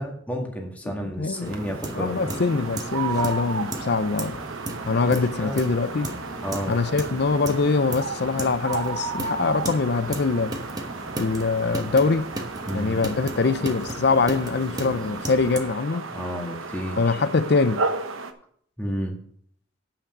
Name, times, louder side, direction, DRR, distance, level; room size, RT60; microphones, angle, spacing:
voice 1, 0.0-2.3 4.9-5.6 6.4-6.8 12.6-13.0 16.1-17.2 18.8-19.2, equal, 10° left, 1.8 m, -31 dB
voice 2, 1.0-1.6 1.9-4.4 4.8-6.2 6.7-10.6 11.2-12.3 12.7-16.1 17.0-17.8, left 4 dB, 55° left, 0.5 m, -23 dB
sound 1, 1.3-18.3, right 4 dB, 80° right, 1.0 m, -34 dB
sound 2, 1.4-15.6, right 1 dB, 20° right, 1.0 m, -36 dB
10.0 x 5.9 x 6.1 m
head